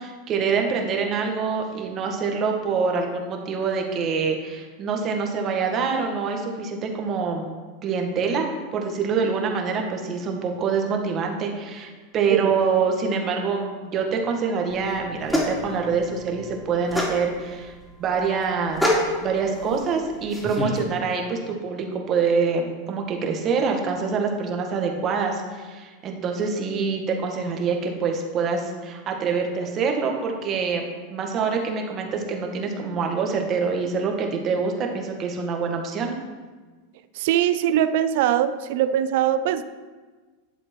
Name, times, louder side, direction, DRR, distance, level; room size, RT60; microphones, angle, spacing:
voice 1, 0.0-7.5 7.8-17.7 18.0-18.8 19.2-36.1, right 5 dB, 40° right, 2 dB, 1.9 m, -25 dB
sound 1, 14.7-20.8, left 1 dB, 5° left, 3.4 m, -28 dB
voice 2, 37.1-39.6, right 11 dB, 60° right, 12 dB, 0.6 m, -21 dB
11.0 x 7.4 x 4.7 m, 1.4 s
hypercardioid pair, 90°, 0 cm